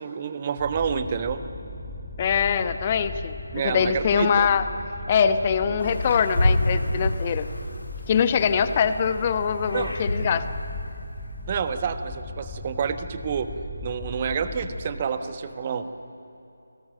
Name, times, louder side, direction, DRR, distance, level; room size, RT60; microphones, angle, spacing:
voice 1, 0.0-1.4 3.5-4.5 9.7-9.9 11.5-13.5 13.8-15.9, right 6 dB, 30° right, 9 dB, 1.2 m, -28 dB
sound 1, 0.6-14.9, left 2 dB, ahead, 2.2 m, -38 dB
voice 2, 2.2-3.3 3.6-4.6 5.1-7.5 8.1-10.5, left 7 dB, 25° left, 11 dB, 1.0 m, -23 dB
sound 2, 5.8-8.5 8.9-10.7, left 1 dB, 85° left, 3.2 m, -27 dB
28.5 x 18.5 x 7.7 m, 2.8 s
figure-of-eight pair, 160°, 0 cm